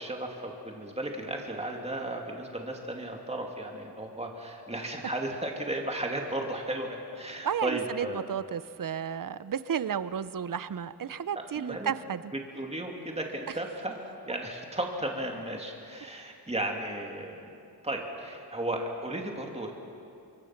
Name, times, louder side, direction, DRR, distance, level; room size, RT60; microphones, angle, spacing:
voice 1, 0.0-8.2 11.3-11.9 12.5-14.0 14.3-17.5 17.8-19.7, right 1 dB, 15° right, 1 dB, 2.6 m, -35 dB
voice 2, 7.4-12.3 13.5-13.6, right 8 dB, 55° right, 15 dB, 0.7 m, -33 dB
26.0 x 22.5 x 6.0 m, 2.6 s
wide cardioid pair, 90°, 39 cm